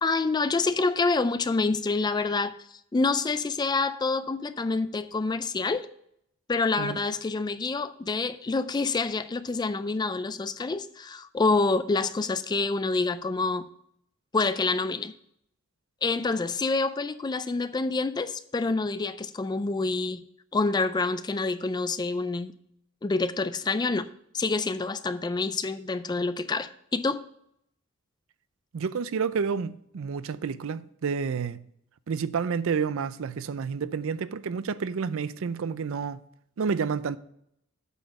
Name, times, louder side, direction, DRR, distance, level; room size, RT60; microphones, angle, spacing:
voice 1, 0.0-2.6 2.9-5.9 6.5-13.7 14.3-15.1 16.0-20.2 20.5-22.5 23.0-24.1 24.3-27.2, left 3 dB, 20° left, 0.3 m, -27 dB
voice 2, 28.7-31.6 32.1-36.2 36.6-37.2, right 6 dB, 65° right, 0.4 m, -29 dB
8.3 x 5.9 x 5.2 m
head